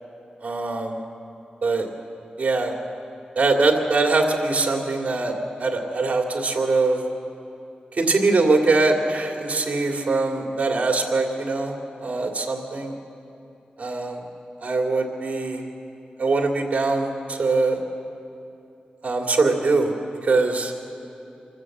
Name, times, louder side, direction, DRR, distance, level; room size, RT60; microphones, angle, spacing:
voice 1, 0.4-1.0 1.6-1.9 2.4-2.7 3.4-7.0 7.9-11.7 12.0-12.9 13.8-14.2 14.6-15.6 16.2-17.8 19.0-19.9 20.2-20.7, right 3 dB, 55° right, 2 dB, 2.5 m, -22 dB
25.5 x 13.5 x 7.9 m, 2.7 s
wide cardioid pair, 110°, 3 cm